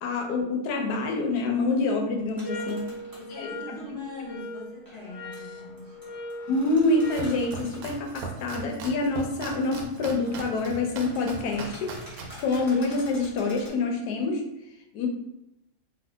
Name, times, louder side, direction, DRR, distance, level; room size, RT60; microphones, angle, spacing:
voice 1, 0.0-2.8 3.4-3.6 6.5-11.9 12.4-14.4 14.9-15.1, left 3 dB, 80° left, 2 dB, 1.2 m, -26 dB
sound 1, 2.3-3.4 4.9-7.9 9.5-9.6 10.0-13.8, equal, 15° right, 0.8 m, -48 dB
sound 2, 2.4-7.4, equal, 20° left, 0.4 m, -40 dB
voice 2, 2.5-6.1, left 2 dB, 50° left, -4 dB, 0.8 m, -41 dB
Domestic sounds home sounds, 6.7-13.7, right 3 dB, 70° right, 1.0 m, -40 dB
2.8 x 2.4 x 3.3 m, 0.87 s
omnidirectional pair, 1.7 m